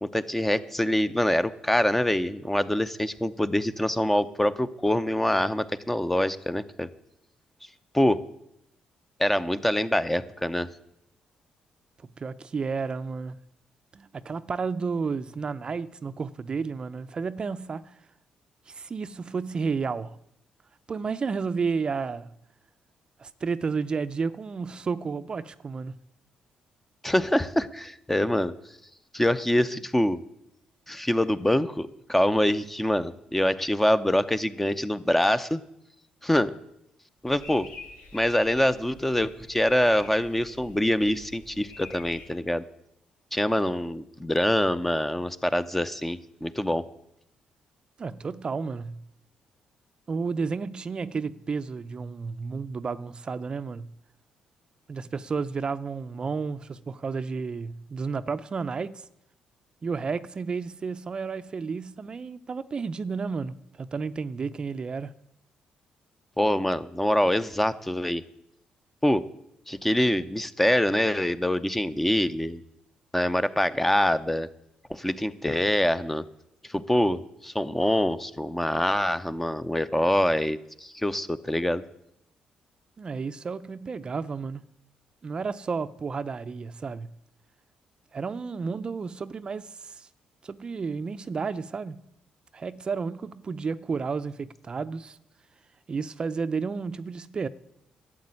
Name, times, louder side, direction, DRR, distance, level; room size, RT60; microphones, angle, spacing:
voice 1, 0.0-6.9 7.9-8.2 9.2-10.7 27.0-28.5 29.1-30.2 30.9-35.6 36.2-36.5 37.2-37.7 38.1-42.6 43.3-46.9 66.4-68.2 69.0-69.2 69.7-72.6 73.1-74.5 74.9-76.2 76.6-81.8, left 1 dB, 10° left, 0.7 m, -25 dB
voice 2, 12.2-13.4 13.9-17.9 18.7-20.2 20.9-22.3 23.2-26.0 48.0-49.0 50.1-53.9 54.9-59.1 59.8-65.1 83.0-84.7 85.2-87.1 88.1-90.1 90.4-92.1 92.5-95.2 95.9-97.5, right 5 dB, 35° right, 0.5 m, -32 dB
sound 1, 37.3-42.3, left 3 dB, 80° left, 4.2 m, -47 dB
12.0 x 7.7 x 9.7 m
cardioid pair, 95°, 3 cm